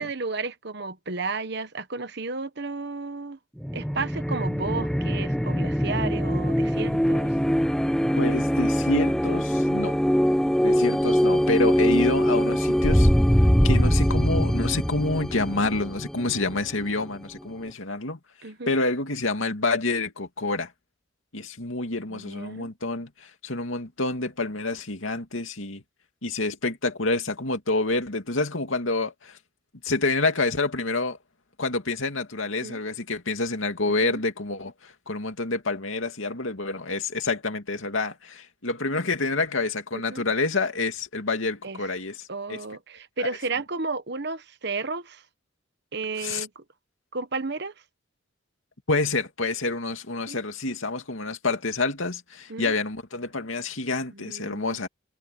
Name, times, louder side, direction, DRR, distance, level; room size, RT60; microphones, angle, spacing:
voice 1, 0.0-3.4 3.7-7.3 18.4-18.8 22.1-22.7 32.6-32.8 34.0-34.2 40.1-40.2 41.6-41.8 42.3-45.2 45.9-46.6 47.1-47.7 50.3-50.4 52.5-52.8 54.1-54.9, right 3 dB, 55° right, 1.2 m, -33 dB
sound 1, 3.6-17.1, equal, ahead, 0.7 m, -23 dB
voice 2, 8.2-10.0 10.6-13.1 13.6-18.2 18.7-20.7 21.3-25.8 26.2-29.4 29.8-31.2 31.6-42.6 43.2-43.3 46.2-46.5 48.9-54.9, left 3 dB, 90° left, 2.6 m, -28 dB
head